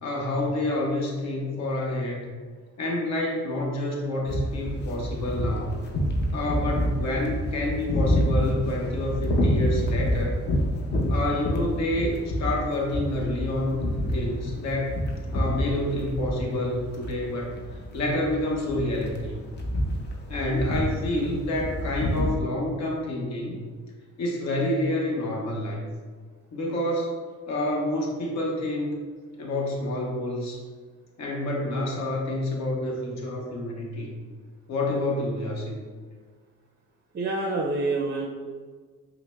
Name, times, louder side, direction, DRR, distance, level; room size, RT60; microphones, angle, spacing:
voice 1, 0.0-2.3 2.8-5.8 6.3-10.4 11.1-13.9 14.1-15.0 15.3-17.5 17.9-19.4 20.3-23.6 24.2-25.9 26.5-27.2 27.5-29.0 29.4-30.6 31.2-34.1 34.7-35.8, left 1 dB, 60° left, -2 dB, 0.9 m, -28 dB
sound 1, 4.3-22.3, equal, 35° left, 0.6 m, -28 dB
voice 2, 37.1-38.3, right 2 dB, 35° right, 0 dB, 0.4 m, -27 dB
5.6 x 2.0 x 2.2 m, 1.5 s
cardioid pair, 90°, 30 cm